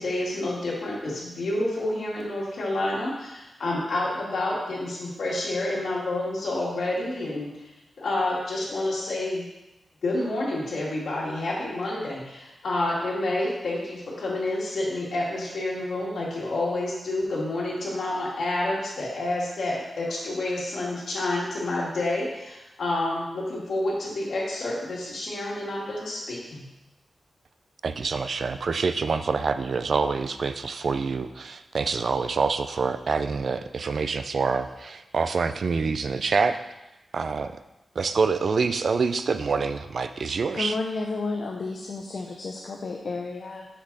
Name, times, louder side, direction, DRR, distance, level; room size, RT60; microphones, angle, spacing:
voice 1, 0.0-7.7 8.0-9.4 10.0-26.6, left 2 dB, 75° left, -4 dB, 2.0 m, -29 dB
voice 2, 27.8-36.6 37.1-37.5 38.0-40.8, right 4 dB, 60° right, 10 dB, 0.4 m, -26 dB
voice 3, 40.5-43.7, left 3 dB, 55° left, 1 dB, 0.6 m, -31 dB
6.1 x 6.1 x 4.0 m, 0.97 s
wide cardioid pair, 130°, 0 cm